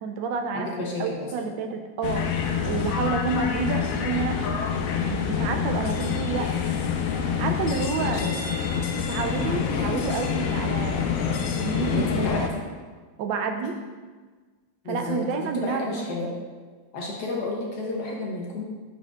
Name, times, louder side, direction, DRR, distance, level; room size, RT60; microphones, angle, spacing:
voice 1, 0.0-4.6 5.0-6.5 7.2-8.2 9.0-12.4 13.2-13.7 14.9-16.2, right 5 dB, 80° right, 5 dB, 1.2 m, -29 dB
voice 2, 0.5-1.4 8.0-8.3 11.9-12.6 14.8-16.3 16.9-18.6, left 2 dB, 60° left, -2 dB, 1.4 m, -31 dB
sound 1, 2.0-12.5, left 7 dB, 85° left, 0.7 m, -27 dB
9.8 x 4.3 x 2.4 m, 1.4 s
omnidirectional pair, 2.1 m